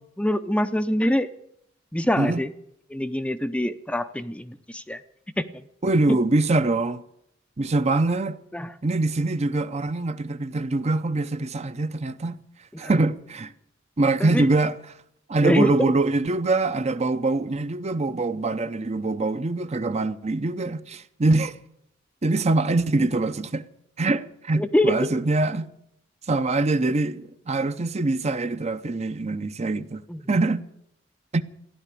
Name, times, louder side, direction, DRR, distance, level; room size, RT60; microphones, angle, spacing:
voice 1, 0.2-1.3 1.9-2.5 2.9-5.0 5.4-5.6 6.1-6.2 8.5-8.7 12.7-12.9 14.2-14.5 15.4-15.7 24.6-25.1 30.1-30.2, left 1 dB, 5° left, 0.5 m, -24 dB
voice 2, 5.8-7.0 7.6-8.4 8.8-12.4 12.8-13.5 14.0-14.7 15.3-21.6 22.2-23.7 24.0-25.7 26.3-30.0 30.3-30.6 31.3-31.4, right 2 dB, 35° right, 0.6 m, -24 dB
15.5 x 11.0 x 8.3 m
head